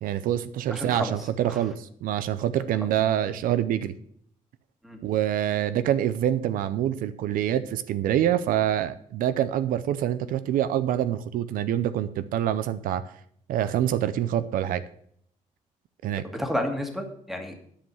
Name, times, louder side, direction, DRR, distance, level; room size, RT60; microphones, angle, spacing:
voice 1, 0.0-3.9 5.0-13.0 13.5-14.8 16.0-16.2, right 11 dB, 90° right, 13 dB, 0.6 m, -26 dB
voice 2, 0.7-1.6 4.8-5.0 16.3-17.6, left 1 dB, ahead, 4 dB, 1.7 m, -31 dB
10.0 x 5.5 x 7.5 m, 0.65 s
cardioid pair, 115°, 14 cm